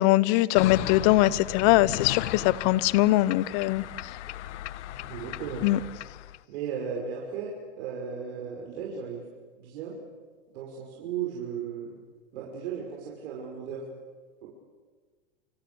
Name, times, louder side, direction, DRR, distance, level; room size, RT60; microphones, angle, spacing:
voice 1, 0.0-3.8 5.6-5.8, left 17 dB, 45° left, 20 dB, 0.9 m, -22 dB
sound 1, 0.5-6.4, left 14 dB, 80° left, 0.9 m, -36 dB
voice 2, 5.0-5.6 6.5-7.5 7.8-9.2 9.6-9.9 10.5-11.9 12.3-13.8 14.4-14.5, right 7 dB, 70° right, -2 dB, 6.1 m, -35 dB
29.5 x 25.0 x 7.2 m, 1.4 s
supercardioid pair, 140°, 34 cm